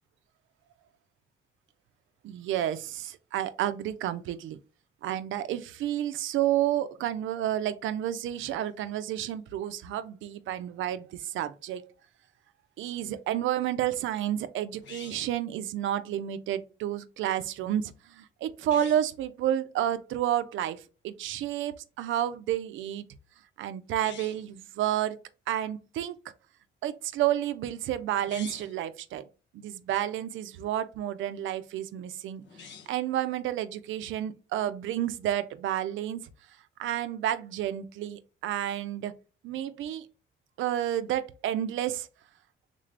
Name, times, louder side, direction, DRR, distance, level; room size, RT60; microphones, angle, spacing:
voice 1, 2.2-4.6 5.0-11.9 12.8-23.1 23.6-25.2 25.5-26.2 26.8-29.3 29.5-36.2 36.8-39.1 39.4-40.1 40.6-42.1, right 11 dB, 80° right, 0.4 m, -30 dB
sound 1, 14.8-15.4 18.6-19.1 23.9-24.5 28.1-28.8 32.4-33.1, left 6 dB, 65° left, 0.7 m, -47 dB
3.6 x 2.5 x 3.2 m
cardioid pair, 90°, 20 cm